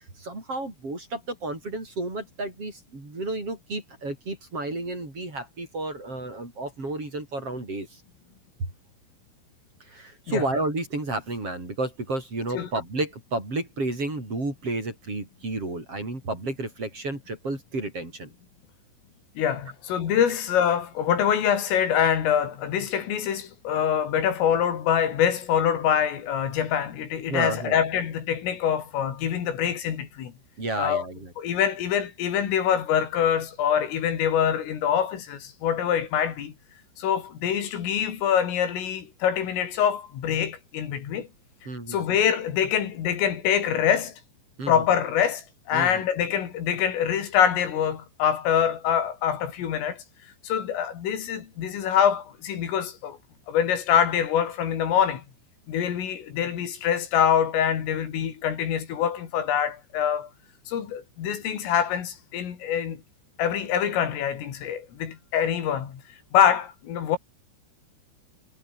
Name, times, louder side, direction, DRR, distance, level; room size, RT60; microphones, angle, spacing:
voice 1, 0.2-8.0 8.6-8.7 9.9-18.3 27.3-27.8 30.6-31.3 41.7-42.0 44.6-44.9 45.7-46.0, right 2 dB, 30° right, 8.1 m, -31 dB
voice 2, 19.4-30.3 30.8-31.1 31.4-36.5 37.0-41.3 41.9-44.2 44.7-50.0 50.4-53.2 53.5-55.2 55.7-60.3 60.7-63.0 63.4-66.0 66.3-67.2, left 9 dB, 80° left, 5.9 m, -25 dB
omnidirectional pair, 5.8 m